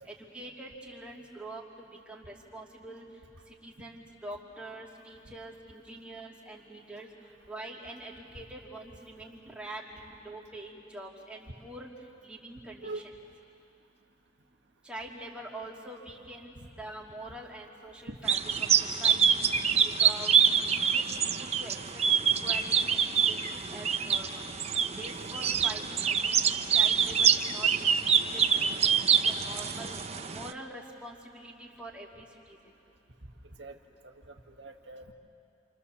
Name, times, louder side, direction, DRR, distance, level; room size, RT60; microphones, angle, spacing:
voice 1, 0.0-1.6 2.1-3.1 3.5-7.1 7.5-11.9 12.2-13.0 14.8-18.4 18.8-19.5 20.0-20.3 20.7-21.8 22.1-24.5 25.0-26.4 26.7-28.7 29.1-29.9 30.3-32.6, right 1 dB, 5° right, -3 dB, 2.8 m, -45 dB
sound 1, 18.3-30.5, right 7 dB, 35° right, 0.7 m, -26 dB
voice 2, 34.0-35.1, right 2 dB, 65° right, 3 dB, 1.7 m, -43 dB
29.0 x 27.0 x 7.2 m, 2.6 s
head